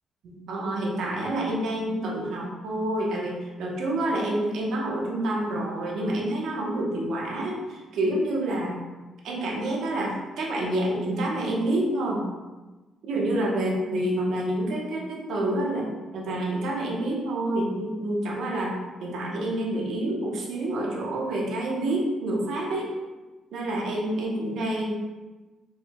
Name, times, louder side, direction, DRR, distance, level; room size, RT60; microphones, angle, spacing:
voice 1, 0.2-8.7 9.2-12.2 13.0-23.0 23.5-24.9, right 1 dB, 75° right, -2 dB, 0.9 m, -28 dB
4.3 x 3.4 x 2.2 m, 1.2 s
cardioid pair, 90°, 0 cm